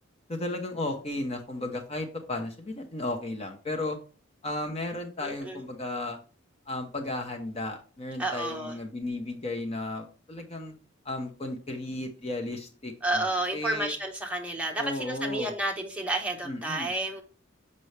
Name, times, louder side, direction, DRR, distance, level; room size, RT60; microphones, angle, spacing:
voice 1, 0.3-4.0 4.4-6.2 6.7-10.7 11.0-13.9 14.8-15.5 16.4-16.9, left 2 dB, 30° left, 0.8 m, -34 dB
voice 2, 5.2-5.6 8.2-8.8 13.0-17.2, right 1 dB, 5° right, 1.1 m, -31 dB
6.7 x 5.4 x 3.3 m
head